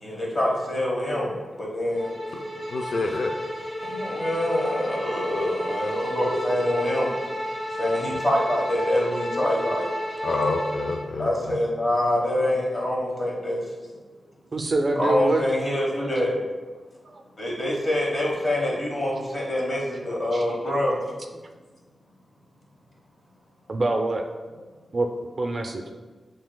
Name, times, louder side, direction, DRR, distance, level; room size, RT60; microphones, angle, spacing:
voice 1, 0.0-1.3 1.6-2.1 3.9-7.1 7.8-9.9 10.2-10.5 11.2-13.6 14.9-16.3 17.4-20.9, left 1 dB, 35° left, -3 dB, 1.2 m, -25 dB
Bowed string instrument, 1.9-11.1, equal, 10° right, 1.3 m, -32 dB
voice 2, 2.7-3.4 10.2-11.6, left 3 dB, 65° left, 3 dB, 0.3 m, -27 dB
voice 3, 14.5-15.4 17.0-17.2 20.3-20.4 23.7-24.2 24.9-25.1 25.4-25.9, right 2 dB, 40° right, 4 dB, 0.4 m, -25 dB
7.2 x 3.2 x 2.3 m, 1.3 s
wide cardioid pair, 135°, 0 cm